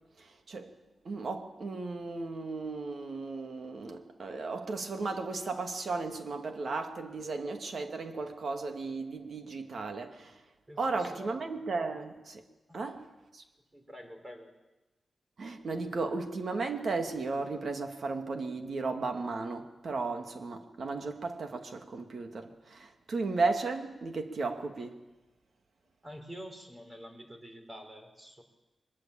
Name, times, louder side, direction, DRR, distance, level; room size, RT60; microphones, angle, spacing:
voice 1, 0.2-0.7 1.0-10.4 10.8-12.4 12.7-13.1 13.3-13.4 15.4-25.0, right 3 dB, 60° right, 2.4 m, -35 dB
voice 2, 10.7-11.3 12.7-12.8 13.7-14.5 26.0-28.4, equal, 20° right, 4.7 m, -47 dB
23.5 x 21.5 x 9.0 m
wide cardioid pair, 100°, 0 cm